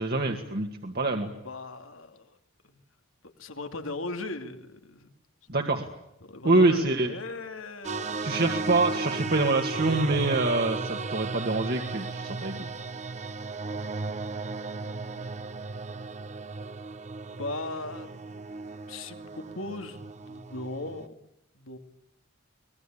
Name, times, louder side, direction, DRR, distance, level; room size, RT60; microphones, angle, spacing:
voice 1, 0.0-1.3 5.5-5.9 6.4-7.1 8.2-12.6, right 2 dB, 50° right, 3 dB, 2.1 m, -25 dB
voice 2, 1.4-2.4 2.6-2.8 3.4-5.1 6.2-8.5 17.3-18.5 18.9-21.1 21.5-21.8, left 2 dB, 90° left, 7 dB, 2.7 m, -38 dB
sound 1, 7.8-21.1, right 3 dB, 35° right, 1.0 m, -35 dB
24.0 x 20.0 x 8.7 m, 0.85 s
head